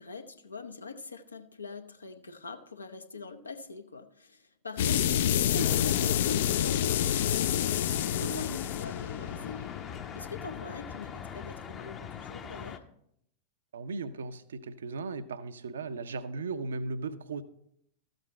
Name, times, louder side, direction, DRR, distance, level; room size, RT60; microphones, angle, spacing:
voice 1, 0.0-12.8, left 4 dB, 80° left, 8 dB, 0.7 m, -43 dB
sound 1, 4.8-11.3, left 10 dB, 55° left, 0.3 m, -29 dB
sound 2, 5.6-12.8, left 7 dB, 25° left, 0.7 m, -42 dB
voice 2, 13.7-17.4, right 3 dB, 65° right, 13 dB, 0.5 m, -37 dB
13.0 x 7.7 x 4.2 m, 0.74 s
figure-of-eight pair, 90°, 0 cm